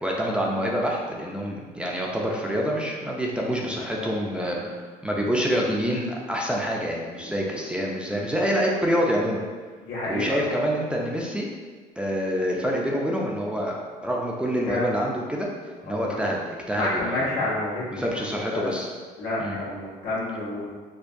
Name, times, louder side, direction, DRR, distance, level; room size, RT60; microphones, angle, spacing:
voice 1, 0.0-4.6 5.0-9.4 10.1-11.5 12.0-15.5 15.8-17.3 17.9-18.9 19.4-19.6, equal, 5° right, -2 dB, 0.5 m, -26 dB
voice 2, 3.7-4.2 4.5-4.7 7.2-7.3 9.8-10.5 14.7-14.9 15.8-16.2 16.7-18.0 18.5-18.7 19.2-20.8, left 2 dB, 90° left, -8 dB, 1.3 m, -30 dB
4.3 x 2.2 x 2.6 m, 1.5 s
cardioid pair, 110°, 17 cm